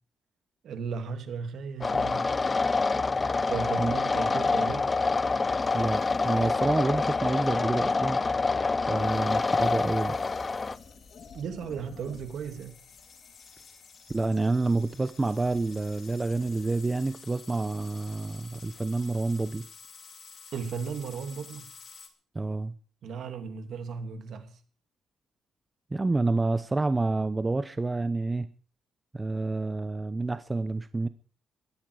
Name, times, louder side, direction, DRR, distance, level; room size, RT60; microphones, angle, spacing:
voice 1, 0.6-2.3 3.5-4.9 11.3-12.7 20.5-21.7 23.0-24.5, right 6 dB, 65° right, 2.8 m, -35 dB
sound 1, 1.8-10.8, left 3 dB, 25° left, 0.7 m, -26 dB
sound 2, 5.6-22.1, left 5 dB, 50° left, 3.1 m, -50 dB
voice 2, 5.7-8.2 8.9-10.2 14.1-19.6 22.3-22.7 25.9-28.5 29.1-31.1, right 3 dB, 20° right, 0.8 m, -28 dB
18.0 x 13.5 x 4.9 m
cardioid pair, 120°, 0 cm